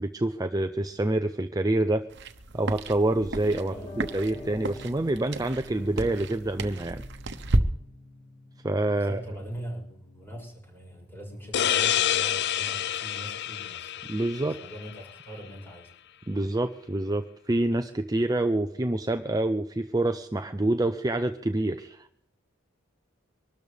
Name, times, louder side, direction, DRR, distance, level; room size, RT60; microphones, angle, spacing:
voice 1, 0.0-2.1 2.5-7.0 8.6-9.2 14.1-14.6 16.3-22.1, right 1 dB, 20° right, 8 dB, 0.6 m, -27 dB
Wet Footsteps, 2.1-7.6, right 2 dB, 55° right, 1.1 m, -32 dB
Piano, 3.1-13.1 13.4-13.5, left 1 dB, 35° left, 6.4 m, -48 dB
voice 2, 8.9-15.9, equal, 10° left, -2 dB, 6.9 m, -42 dB
sound 1, 11.5-15.0, left 11 dB, 55° left, 0.5 m, -28 dB
24.5 x 13.0 x 3.5 m, 0.71 s
head